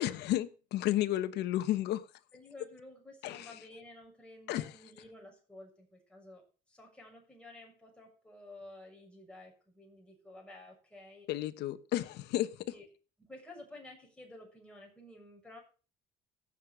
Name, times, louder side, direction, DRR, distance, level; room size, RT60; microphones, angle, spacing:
voice 1, 0.0-2.0 3.2-3.5 4.5-4.7 11.3-12.5, left 14 dB, 80° left, 1.1 m, -32 dB
voice 2, 2.3-11.3 12.7-12.9 13.2-15.6, left 2 dB, 5° left, 6.8 m, -52 dB
15.5 x 6.6 x 6.4 m
cardioid pair, 110°, 17 cm